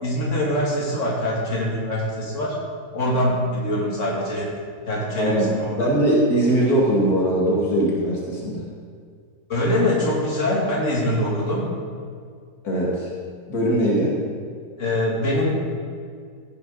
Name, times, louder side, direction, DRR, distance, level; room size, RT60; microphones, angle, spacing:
voice 1, 0.0-2.6 2.9-4.6 4.9-5.9 9.5-11.7 14.8-15.7, left 1 dB, 55° left, -4 dB, 3.0 m, -23 dB
voice 2, 5.2-5.5 5.8-8.6 12.6-13.1 13.5-14.2, right 1 dB, 80° left, -4 dB, 2.8 m, -20 dB
16.0 x 9.8 x 4.0 m, 2.1 s
omnidirectional pair, 1.6 m